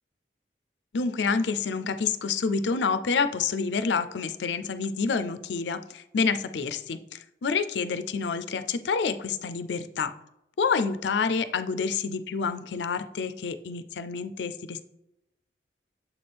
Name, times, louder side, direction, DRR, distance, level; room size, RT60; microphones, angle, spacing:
voice 1, 0.9-10.1 10.6-14.8, left 5 dB, 75° left, 11 dB, 0.4 m, -28 dB
7.1 x 4.2 x 3.4 m, 0.86 s
head